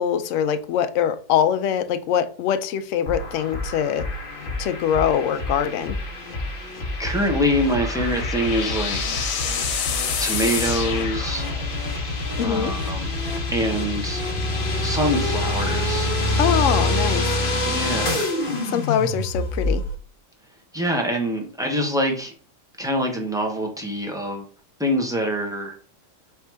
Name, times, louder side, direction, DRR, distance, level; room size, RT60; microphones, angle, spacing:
voice 1, 0.0-4.0 4.6-5.9 12.4-12.7 16.4-17.2 18.7-19.8, left 9 dB, 70° left, 10 dB, 0.7 m, -23 dB
sound 1, 3.1-19.9, left 2 dB, 40° left, 0.9 m, -26 dB
voice 2, 7.0-9.2 10.2-11.5 12.4-13.1 13.5-14.2 14.8-16.1 17.6-18.3 20.7-22.3 22.8-24.4 24.8-25.8, equal, 5° right, 1 dB, 0.6 m, -25 dB
sound 2, 7.4-11.8, left 7 dB, 85° left, 1.4 m, -28 dB
4.5 x 3.5 x 3.3 m, 0.40 s
omnidirectional pair, 1.8 m